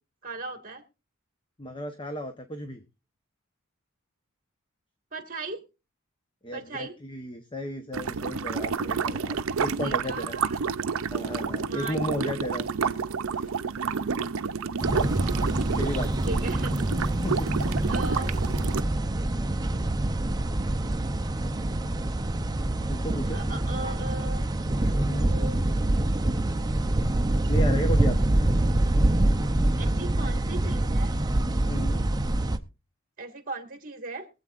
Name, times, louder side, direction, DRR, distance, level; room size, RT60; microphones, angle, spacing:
voice 1, 0.2-0.8 5.1-5.6 6.5-7.0 9.8-10.6 11.7-12.0 13.9-14.2 16.2-16.9 17.3-17.6 17.9-18.3 23.3-24.4 24.8-25.6 29.8-31.1 33.2-34.3, right 3 dB, 40° right, 6 dB, 2.0 m, -38 dB
voice 2, 1.6-2.8 6.4-10.4 11.1-12.7 13.3-13.5 14.9-15.1 15.8-16.1 17.2-17.5 22.9-23.4 24.9-25.5 27.5-28.2 31.7-32.0, equal, 25° left, 7 dB, 0.9 m, -34 dB
sound 1, 7.9-18.8, right 5 dB, 80° right, 0.6 m, -30 dB
sound 2, 14.8-32.6, right 1 dB, 20° right, 0.6 m, -25 dB
22.5 x 8.2 x 2.5 m, 0.30 s
head